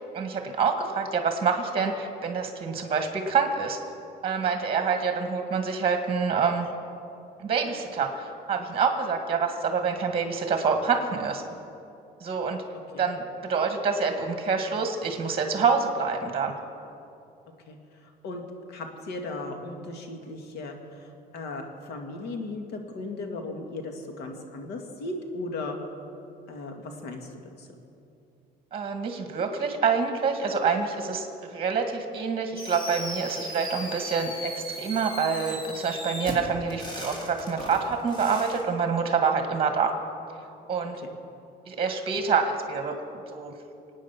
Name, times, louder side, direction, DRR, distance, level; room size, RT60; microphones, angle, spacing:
voice 1, 0.1-3.8 4.2-6.7 7.4-11.4 12.2-12.6 13.0-16.5 28.7-39.9 40.7-41.0 41.7-43.0 43.3-43.5, right 5 dB, 35° right, 5 dB, 1.8 m, -26 dB
voice 2, 17.7-18.4 18.7-25.8 26.5-27.3 27.6-27.7 41.0-41.1, left 2 dB, 80° left, 4 dB, 2.2 m, -37 dB
Fireworks, 32.6-38.6, equal, 25° left, 4.0 m, -37 dB
25.0 x 9.3 x 6.0 m, 2.7 s
cardioid pair, 110°, 17 cm